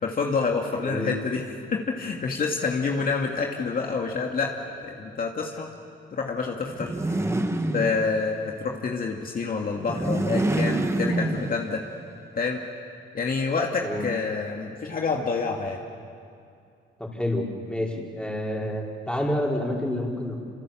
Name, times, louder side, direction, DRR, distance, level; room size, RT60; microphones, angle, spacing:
voice 1, 0.0-1.4 1.7-5.7 6.1-6.9 7.2-7.3 7.7-11.8 12.4-12.6 13.1-15.8, left 4 dB, 45° left, 0 dB, 2.4 m, -27 dB
sound 1, 6.7-8.4 9.8-11.9, right 1 dB, 15° right, 1.7 m, -27 dB
voice 2, 17.0-20.4, left 1 dB, 5° left, -2 dB, 5.0 m, -28 dB
28.0 x 27.0 x 7.6 m, 2.4 s
cardioid pair, 90°, 20 cm